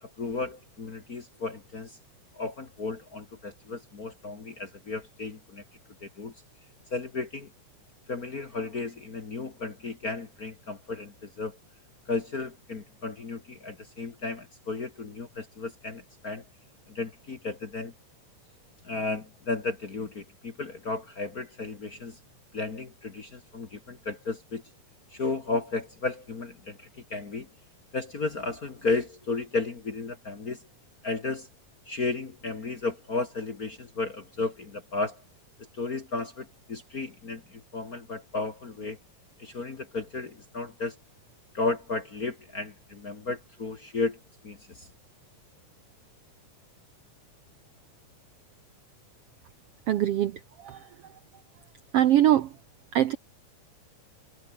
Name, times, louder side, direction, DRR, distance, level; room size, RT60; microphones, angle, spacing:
voice 1, 0.0-2.0 2.3-5.6 6.0-6.3 6.9-7.5 8.1-11.6 12.1-16.4 16.9-17.9 18.8-22.2 22.5-24.6 25.1-27.5 27.9-30.6 31.0-31.5 31.8-35.2 35.7-39.0 39.4-41.0 41.5-44.9, left 3 dB, 35° left, 1.5 m, -34 dB
voice 2, 49.9-50.3 50.6-50.8 51.9-52.5 52.9-53.2, right 12 dB, 70° right, 1.5 m, -22 dB
omnidirectional pair, 3.7 m